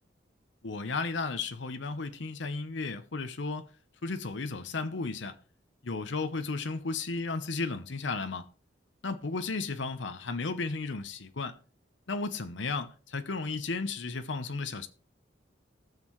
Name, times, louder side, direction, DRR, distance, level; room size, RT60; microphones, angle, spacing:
voice 1, 0.6-3.7 4.0-5.4 5.8-8.5 9.0-11.6 12.1-14.9, left 3 dB, 75° left, 0.8 m, -34 dB
19.0 x 6.4 x 3.1 m
head